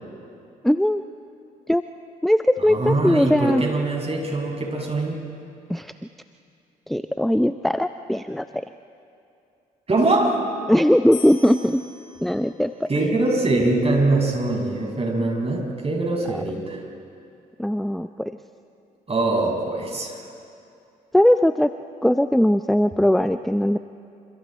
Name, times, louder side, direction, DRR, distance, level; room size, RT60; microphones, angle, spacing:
voice 1, 0.6-1.0 1.7-1.9 2.2-3.6 5.7-5.9 6.9-8.7 10.7-11.8 12.2-13.1 16.3-16.4 17.6-18.3 21.1-21.7 22.0-23.8, equal, ahead, 11 dB, 0.6 m, -20 dB
voice 2, 2.7-5.2 9.9-10.4 12.9-16.8 19.1-20.2, right 2 dB, 30° right, 0 dB, 6.6 m, -23 dB
sound 1, 11.1-14.3, left 7 dB, 80° left, 4.0 m, -44 dB
28.5 x 27.0 x 4.5 m, 2.6 s
hypercardioid pair, 45°, 20 cm